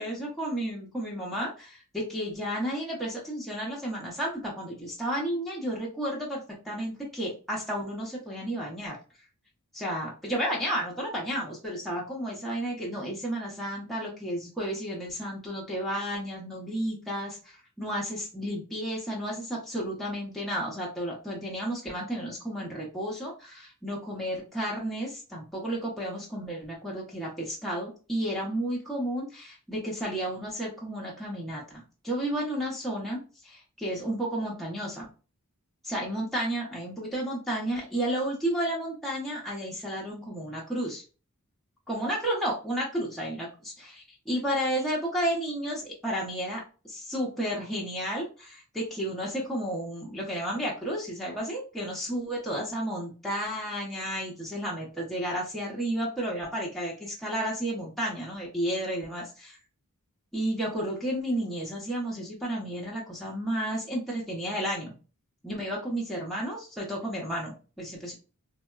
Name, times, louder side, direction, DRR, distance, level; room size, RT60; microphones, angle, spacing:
voice 1, 0.0-9.0 9.7-35.1 35.8-41.0 41.9-59.6 60.3-64.9 65.4-68.1, right 1 dB, ahead, -5 dB, 0.7 m, -32 dB
3.4 x 2.0 x 2.3 m, 0.34 s
head